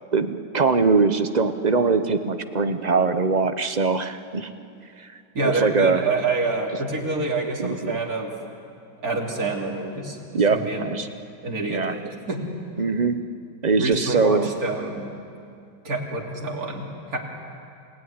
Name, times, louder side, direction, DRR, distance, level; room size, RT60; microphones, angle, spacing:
voice 1, 0.1-4.5 5.4-6.0 7.6-8.0 10.3-11.1 11.7-12.0 12.8-13.2 13.6-14.5, right 4 dB, 35° right, 9 dB, 0.7 m, -22 dB
voice 2, 5.3-8.3 9.0-10.2 10.5-10.9 11.4-12.4 13.7-15.1 15.8-17.2, right 3 dB, 55° right, -1 dB, 3.5 m, -27 dB
29.0 x 17.0 x 9.7 m, 2.5 s
omnidirectional pair, 1.9 m